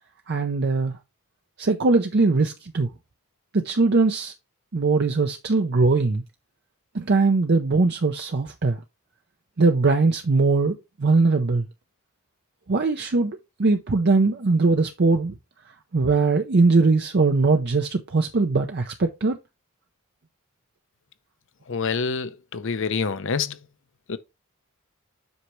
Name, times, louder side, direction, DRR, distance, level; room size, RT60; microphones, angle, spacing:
voice 1, 0.3-0.9 1.6-2.9 3.5-4.3 4.7-6.2 6.9-8.8 9.6-11.7 12.7-15.3 15.9-19.4, right 3 dB, 50° right, 0.6 m, -21 dB
voice 2, 21.7-23.6 24.1-24.2, left 5 dB, 60° left, 0.7 m, -27 dB
8.1 x 5.7 x 3.1 m
head